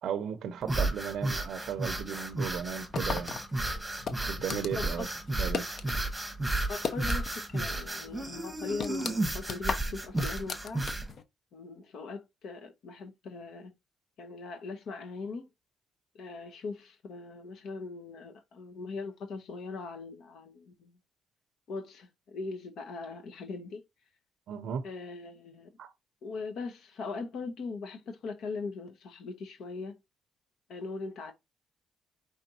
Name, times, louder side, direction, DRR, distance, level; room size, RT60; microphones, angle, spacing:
voice 1, 0.0-3.4 4.2-5.1 5.4-5.7 24.5-24.8 25.8-25.9, right 8 dB, 70° right, 0.5 m, -35 dB
sound 1, 0.6-11.1, right 2 dB, 5° right, 1.2 m, -33 dB
sound 2, 2.9-6.0 6.3-7.6 7.9-8.0 8.4-11.2, left 5 dB, 55° left, 0.7 m, -37 dB
voice 2, 4.7-5.1 6.7-10.8 11.5-13.7 14.2-15.5 16.1-21.0 21.7-23.8 24.8-25.7 26.2-30.0 30.7-31.3, left 4 dB, 70° left, 1.1 m, -40 dB
5.1 x 3.5 x 2.8 m
cardioid pair, 90°, 0 cm